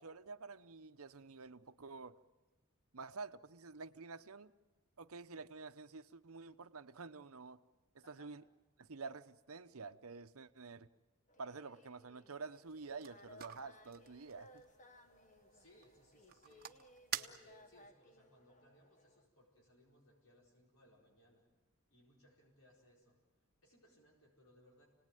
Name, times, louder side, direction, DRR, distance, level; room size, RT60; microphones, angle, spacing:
voice 1, 0.0-2.2 2.9-4.5 5.0-7.6 8.1-8.4 8.8-10.9 11.4-14.6, right 4 dB, 70° right, 11 dB, 0.9 m, -49 dB
voice 2, 8.0-8.4 15.5-16.8 17.1-21.5 21.9-23.2 23.6-24.9, equal, 70° left, -3 dB, 4.8 m, -67 dB
sound 1, 11.3-19.3, left 1 dB, 35° left, 1.4 m, -62 dB
sound 2, 12.7-17.9, right 10 dB, 45° right, 1.1 m, -49 dB
28.5 x 19.0 x 9.2 m, 1.2 s
head